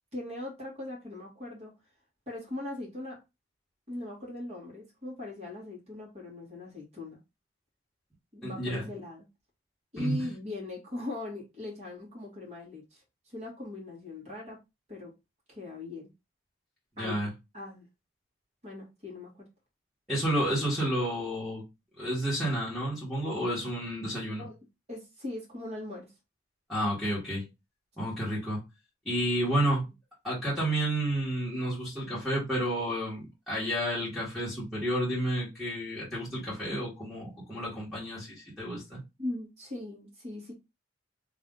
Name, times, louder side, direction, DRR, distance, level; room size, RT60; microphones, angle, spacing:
voice 1, 0.1-1.7 2.3-3.2 3.9-7.2 8.3-9.3 9.9-14.6 14.9-15.1 15.5-16.1 17.0-17.2 17.5-17.8 18.6-19.4 24.4-24.6 24.9-26.1 39.2-40.5, left 2 dB, 35° right, 1.9 m, -40 dB
voice 2, 8.4-8.9 10.0-10.3 17.0-17.3 20.1-21.6 22.0-24.4 26.7-27.5 28.0-28.6 29.0-29.8 30.2-39.0, right 1 dB, ahead, 1.6 m, -31 dB
3.3 x 2.8 x 3.8 m
head